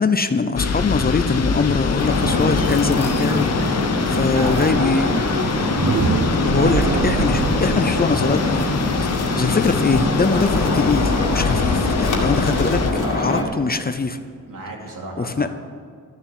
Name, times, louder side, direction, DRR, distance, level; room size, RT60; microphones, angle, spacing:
voice 1, 0.0-5.2 6.3-9.1 9.4-12.9 13.1-14.2 15.2-15.5, left 4 dB, 30° left, 10 dB, 0.6 m, -22 dB
sound 1, 0.6-12.9, left 5 dB, 50° left, 0.9 m, -25 dB
sound 2, 2.0-13.4, left 2 dB, 70° left, 1.9 m, -23 dB
voice 2, 4.2-6.9 13.0-13.6 14.5-15.5, right 2 dB, 75° right, -2 dB, 3.1 m, -31 dB
sound 3, 5.6-11.4, right 5 dB, 60° right, 0.9 m, -27 dB
13.5 x 7.0 x 9.2 m, 2.1 s
wide cardioid pair, 150°, 33 cm